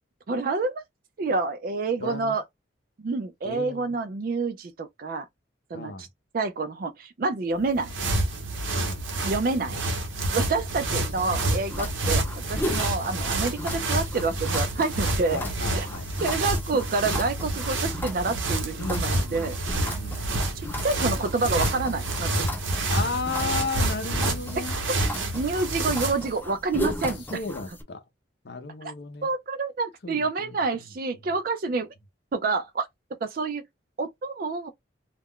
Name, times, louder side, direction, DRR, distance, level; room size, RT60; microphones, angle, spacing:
voice 1, 0.3-0.8 1.2-2.4 3.0-5.3 5.7-6.1 6.3-7.9 9.2-9.8 10.3-15.4 15.7-15.9 16.2-19.6 20.8-22.3 25.3-27.4 28.8-28.9 29.2-31.9 32.3-32.9 33.2-33.6 34.0-34.7, right 3 dB, 45° right, 0.4 m, -28 dB
voice 2, 2.0-2.4 3.4-4.0 5.7-6.1 8.7-9.0 12.8-12.9 15.3-16.1 18.8-20.3 22.9-24.8 27.3-28.0 28.4-29.3 30.0-30.5, left 4 dB, 55° left, 0.5 m, -34 dB
sound 1, 7.6-26.3, right 2 dB, 85° right, 0.9 m, -28 dB
sound 2, 11.0-27.8, equal, 10° left, 0.5 m, -37 dB
2.3 x 2.1 x 3.5 m
head